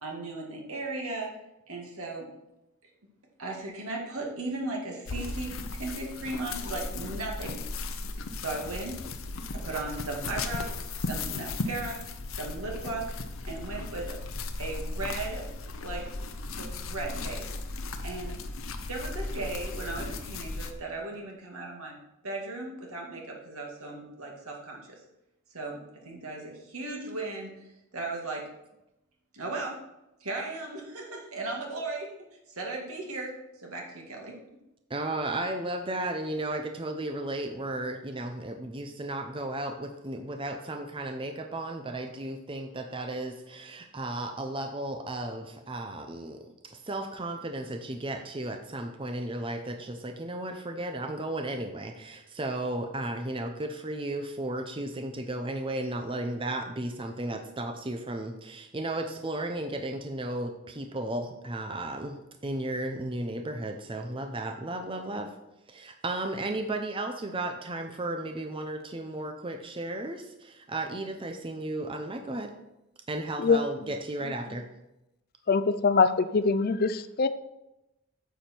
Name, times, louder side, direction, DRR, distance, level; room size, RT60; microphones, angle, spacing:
voice 1, 0.0-1.3 1.7-2.3 3.4-7.6 8.4-9.0 9.5-10.7 11.0-12.0 12.3-13.0 13.4-14.1 14.6-15.5 15.8-16.1 16.5-17.6 18.0-18.3 18.9-22.0 22.2-25.0 25.5-27.5 27.9-28.4 29.3-29.8 30.2-32.1 32.5-34.3, right 2 dB, 80° right, 0 dB, 2.2 m, -36 dB
sound 1, 5.1-20.7, left 3 dB, 70° left, 0.8 m, -36 dB
voice 2, 34.9-65.3 65.7-72.5 73.1-74.7, right 1 dB, 25° right, 6 dB, 0.6 m, -34 dB
voice 3, 75.5-77.3, left 4 dB, 45° left, 13 dB, 0.4 m, -23 dB
9.2 x 7.1 x 4.5 m, 0.91 s
head